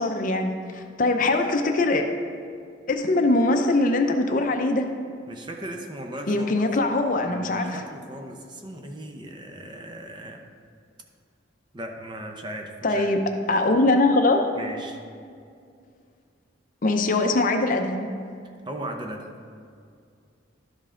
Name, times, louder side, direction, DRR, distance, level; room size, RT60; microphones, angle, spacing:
voice 1, 0.0-2.0 2.9-4.9 6.3-7.8 12.8-13.2 13.5-14.5 16.8-18.1, left 2 dB, 45° left, 5 dB, 0.6 m, -22 dB
voice 2, 5.3-6.5 7.2-10.4 11.7-13.1 14.6-15.0 18.7-19.3, right 1 dB, 25° right, 3 dB, 0.7 m, -37 dB
12.0 x 5.4 x 3.7 m, 2.3 s
head